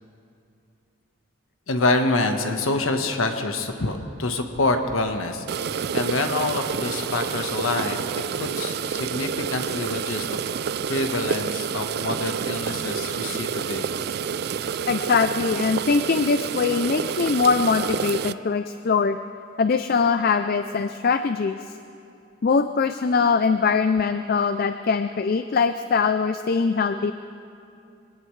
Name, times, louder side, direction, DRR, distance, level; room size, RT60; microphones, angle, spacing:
voice 1, 1.7-5.4 5.9-8.0 8.3-10.4 10.9-13.9, left 2 dB, 85° left, 5 dB, 1.3 m, -26 dB
sound 1, 5.5-18.3, right 7 dB, 50° right, 0.3 m, -29 dB
voice 2, 14.9-19.2 19.6-21.6 22.4-27.1, left 5 dB, 45° left, 9 dB, 0.4 m, -22 dB
24.0 x 18.0 x 3.3 m, 2.6 s
head